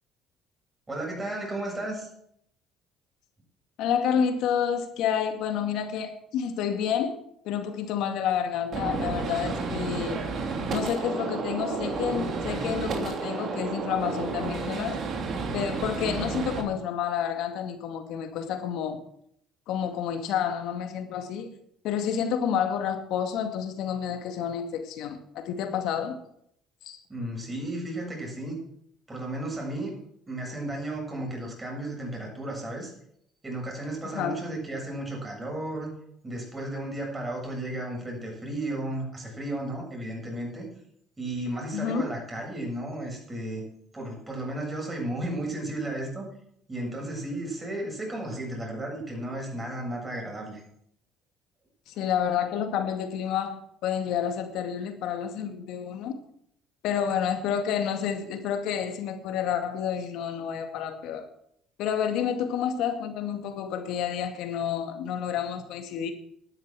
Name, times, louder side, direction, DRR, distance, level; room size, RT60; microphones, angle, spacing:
voice 1, 0.9-2.1 27.1-28.6 29.1-29.9 30.3-32.9 33.4-35.9 36.2-40.7 41.2-43.7 43.9-46.2 46.7-50.6, right 1 dB, 20° right, 7.6 m, -34 dB
voice 2, 3.8-7.2 7.4-10.2 10.7-15.0 15.5-19.0 19.7-21.5 21.8-26.1 26.8-27.0 34.1-34.3 41.7-42.0 51.9-56.2 56.8-61.2 61.8-66.1, left 8 dB, 75° left, 2.2 m, -29 dB
Gunshot gunfire, 8.7-16.6, right 4 dB, 50° right, 3.2 m, -31 dB
12.0 x 10.0 x 7.6 m
supercardioid pair, 95°, 0 cm